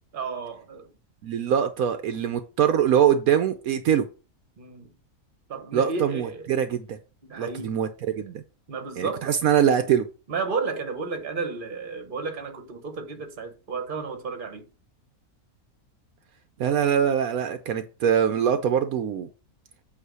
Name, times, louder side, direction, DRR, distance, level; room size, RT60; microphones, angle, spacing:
voice 1, 0.1-0.9 4.6-4.9 5.5-6.5 7.2-7.8 8.7-9.3 10.3-14.6, right 4 dB, 40° right, 1.2 m, -32 dB
voice 2, 1.2-4.1 5.7-7.0 7.4-7.9 8.2-8.4 9.0-10.1 16.6-19.3, right 8 dB, 70° right, 1.1 m, -23 dB
8.2 x 2.8 x 6.2 m
omnidirectional pair, 1.6 m